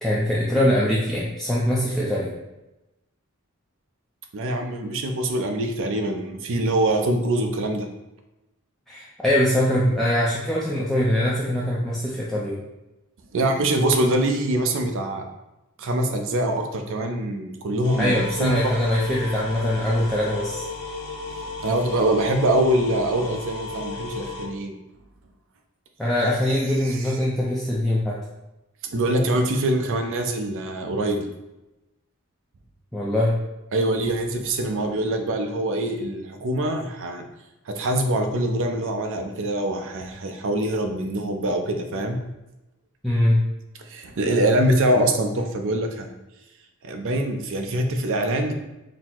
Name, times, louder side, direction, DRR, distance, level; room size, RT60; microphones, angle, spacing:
voice 1, 0.0-2.3 8.9-12.6 18.0-20.7 26.0-28.2 32.9-33.3 43.0-43.4, left 1 dB, ahead, -6 dB, 0.4 m, -22 dB
voice 2, 4.3-7.9 13.3-15.3 15.8-18.5 21.4-24.7 28.8-31.3 33.7-37.2 37.7-42.2 43.8-46.1 46.8-48.5, right 1 dB, 60° right, 5 dB, 0.5 m, -24 dB
sound 1, 17.8-24.5, left 3 dB, 70° left, 0.8 m, -34 dB
4.0 x 2.0 x 4.3 m, 0.98 s
head